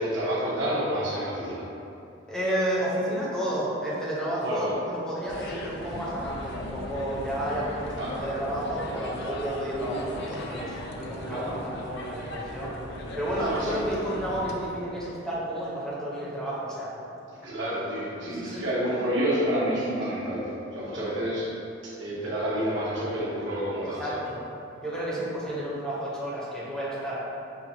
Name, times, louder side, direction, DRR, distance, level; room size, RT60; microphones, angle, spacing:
voice 1, 0.0-1.7 4.4-4.7 8.0-8.6 9.7-9.9 11.3-11.6 13.3-13.8 17.4-21.5 21.8-24.2, equal, 65° right, -8 dB, 1.0 m, -29 dB
voice 2, 2.3-12.8 13.1-17.0 18.2-18.7 21.0-21.1 23.8-24.5 24.8-27.2, right 1 dB, 5° left, -8 dB, 0.7 m, -31 dB
sound 1, 5.3-14.7, left 1 dB, 60° left, 0.4 m, -38 dB
5.9 x 2.2 x 2.7 m, 2.8 s
head